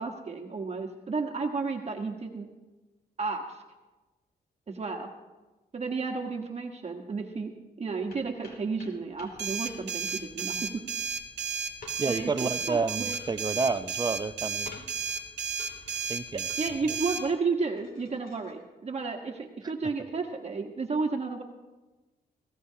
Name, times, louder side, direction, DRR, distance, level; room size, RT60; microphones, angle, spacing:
voice 1, 0.0-2.5 3.2-3.6 4.7-5.1 5.7-7.5 7.8-10.6 12.1-13.1 16.6-21.4, right 4 dB, 40° right, 3 dB, 1.4 m, -32 dB
sound 1, 8.1-18.5, left 3 dB, 60° left, 2.7 m, -52 dB
sound 2, 9.4-17.2, right 6 dB, 85° right, 1.4 m, -33 dB
voice 2, 12.0-14.7 16.1-16.5, right 4 dB, 25° right, 11 dB, 0.6 m, -29 dB
25.0 x 16.0 x 2.8 m, 1.1 s
cardioid pair, 110°, 17 cm